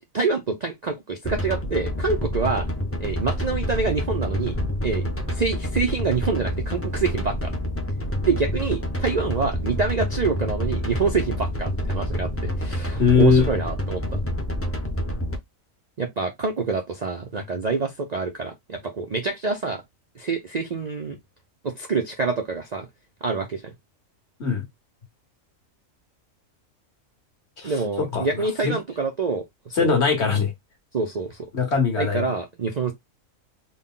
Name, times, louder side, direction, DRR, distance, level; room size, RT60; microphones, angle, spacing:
voice 1, 0.1-2.7 3.0-4.5 4.8-7.5 8.2-14.2 16.0-19.8 20.2-21.2 21.6-22.9 23.2-23.7 27.6-29.9 30.9-31.5 32.0-32.9, right 4 dB, 50° right, 0.5 m, -26 dB
sound 1, 1.2-15.4, equal, 15° left, 0.6 m, -28 dB
voice 2, 13.0-13.5 24.4-24.6 27.6-27.7 28.0-28.8 29.7-30.5 31.5-32.2, left 5 dB, 55° left, 1.6 m, -21 dB
3.9 x 2.2 x 3.7 m
omnidirectional pair, 1.4 m